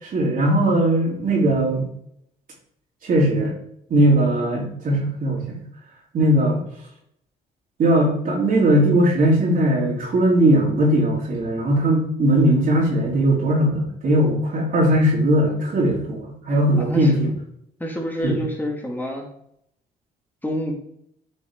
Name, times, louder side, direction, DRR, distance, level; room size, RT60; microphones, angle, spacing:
voice 1, 0.0-1.9 3.0-3.5 3.9-5.6 6.1-6.6 7.8-17.3 18.2-18.4, right 1 dB, 60° right, -3 dB, 3.6 m, -19 dB
voice 2, 16.8-17.1 17.8-19.3 20.4-20.7, equal, 10° left, -1 dB, 2.1 m, -28 dB
9.3 x 5.4 x 3.8 m, 0.72 s
supercardioid pair, 75°, 16 cm